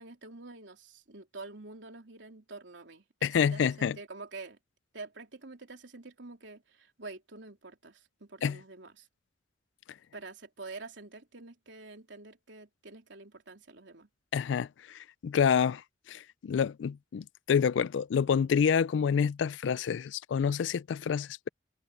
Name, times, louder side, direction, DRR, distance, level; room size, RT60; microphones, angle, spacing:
voice 1, 0.0-4.6 4.9-9.1 10.1-14.1, right 3 dB, 90° right, 3.2 m, -47 dB
voice 2, 3.2-4.0 8.4-8.6 14.3-21.5, left 7 dB, 90° left, 0.3 m, -28 dB
head